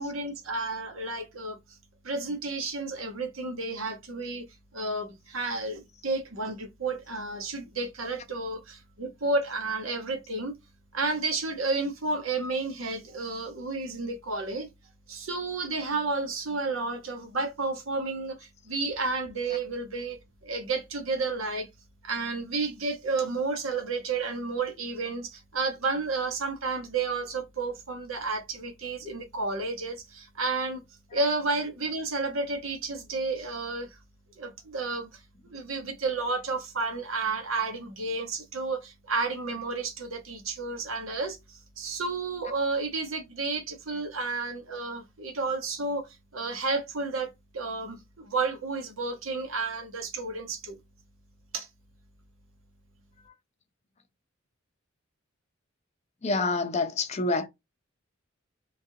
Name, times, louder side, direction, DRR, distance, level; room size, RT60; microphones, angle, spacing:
voice 1, 0.0-1.6 2.0-4.5 4.7-10.6 10.9-14.7 15.1-21.7 22.0-30.8 31.1-34.0 34.3-46.0 46.3-50.8 51.5-51.7, right 3 dB, 85° right, 1.0 m, -31 dB
voice 2, 56.2-57.5, left 3 dB, 35° left, 0.5 m, -27 dB
3.1 x 2.5 x 2.7 m
head